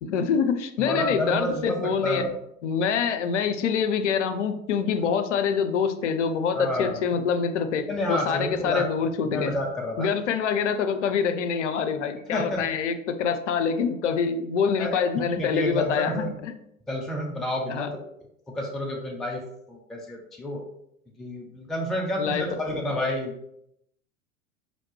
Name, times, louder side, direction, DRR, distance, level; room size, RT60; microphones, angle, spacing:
voice 1, 0.0-2.2 2.6-9.5 10.0-16.5 17.7-17.9 22.2-22.8, left 6 dB, 60° left, 9 dB, 0.6 m, -26 dB
voice 2, 0.8-1.8 2.0-2.3 6.5-7.0 7.9-8.9 9.3-10.1 12.3-12.6 14.8-15.0 15.3-16.3 16.9-17.9 18.5-19.4 19.7-20.6 21.2-23.3, left 1 dB, ahead, 0 dB, 0.4 m, -29 dB
5.6 x 2.7 x 3.1 m, 0.76 s
figure-of-eight pair, 85°, 40 cm